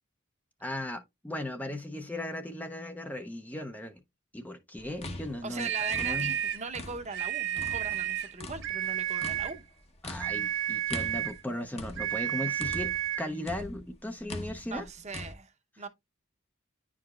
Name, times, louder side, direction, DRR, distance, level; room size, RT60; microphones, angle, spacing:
voice 1, 0.6-4.0 4.3-5.7 6.0-6.3 10.0-14.9, left 1 dB, 10° left, 0.6 m, -37 dB
sound 1, 4.8-7.2 7.6-13.1 13.5-15.3, left 2 dB, 30° left, 1.0 m, -42 dB
voice 2, 5.4-9.6 14.7-15.9, right 4 dB, 35° right, 0.8 m, -40 dB
sound 2, 5.6-6.7 7.1-8.3 8.6-9.6 10.2-11.4 12.0-13.3, right 11 dB, 60° right, 1.3 m, -32 dB
10.0 x 4.8 x 2.4 m
head